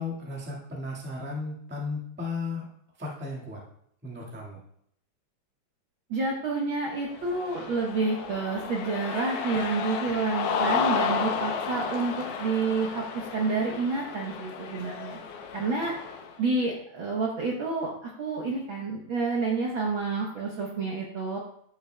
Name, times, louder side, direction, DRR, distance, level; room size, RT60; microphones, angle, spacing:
voice 1, 0.0-2.7 3.0-3.6 4.0-4.6, left 3 dB, 10° right, -3 dB, 0.5 m, -35 dB
voice 2, 6.1-15.9 16.4-21.4, right 3 dB, 65° right, -2 dB, 1.2 m, -29 dB
Cheering, 7.1-16.3, left 6 dB, 80° left, 1.3 m, -32 dB
12.0 x 6.0 x 2.2 m, 0.70 s
omnidirectional pair, 3.4 m